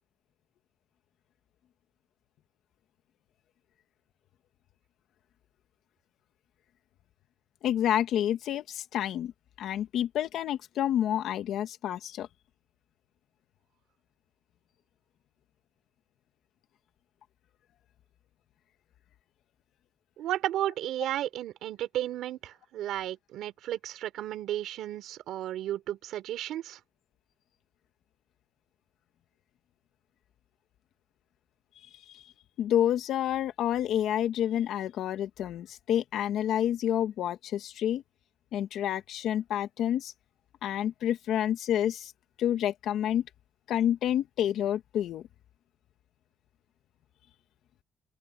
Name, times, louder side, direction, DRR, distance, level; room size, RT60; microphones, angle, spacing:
voice 1, 7.6-9.3 9.6-12.3 32.1-32.3 32.6-38.0 38.5-40.1 40.6-42.1 42.4-43.2 43.7-45.2, left 11 dB, 80° left, 1.8 m, -29 dB
voice 2, 20.2-26.8, right 12 dB, 85° right, 3.7 m, -33 dB
open air
cardioid pair, 90°, 0 cm